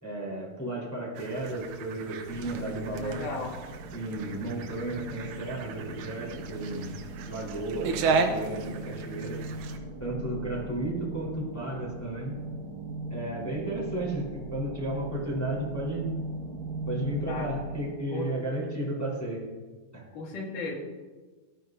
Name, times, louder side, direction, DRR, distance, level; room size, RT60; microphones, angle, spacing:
voice 1, 0.0-3.3 3.9-6.9 7.3-9.4 10.0-12.3 13.1-16.1 16.9-19.4 19.9-20.0, right 1 dB, 5° left, -6 dB, 3.6 m, -33 dB
sound 1, 1.1-9.8, right 4 dB, 80° right, 2.4 m, -34 dB
sound 2, 2.3-18.0, right 2 dB, 60° right, 2.9 m, -39 dB
voice 2, 3.0-3.5 17.3-17.5 18.1-18.4 20.1-20.7, left 3 dB, 70° left, -2 dB, 3.7 m, -35 dB
17.5 x 13.0 x 2.7 m, 1.3 s
omnidirectional pair, 3.8 m